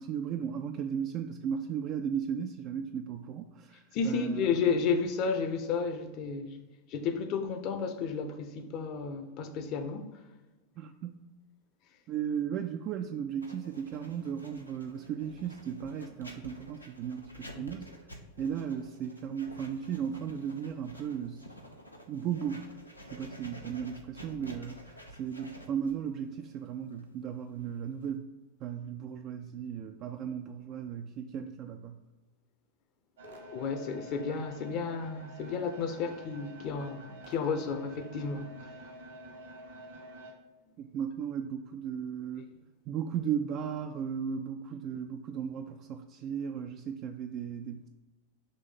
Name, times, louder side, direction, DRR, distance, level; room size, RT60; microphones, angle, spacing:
voice 1, 0.0-3.8 4.0-4.5 10.8-11.2 12.1-17.9 18.4-21.4 22.1-22.6 23.0-28.3 28.6-32.0 40.8-42.5 42.9-47.9, right 8 dB, 35° right, 0.3 m, -36 dB
voice 2, 3.9-6.6 6.9-10.2 17.5-17.7 33.2-38.8, left 5 dB, 40° left, 0.7 m, -32 dB
Writing, 13.4-28.1, equal, 85° left, 0.7 m, -50 dB
sound 1, 33.2-40.3, right 1 dB, 65° right, 1.2 m, -49 dB
5.2 x 3.3 x 5.5 m
figure-of-eight pair, 90°, 0 cm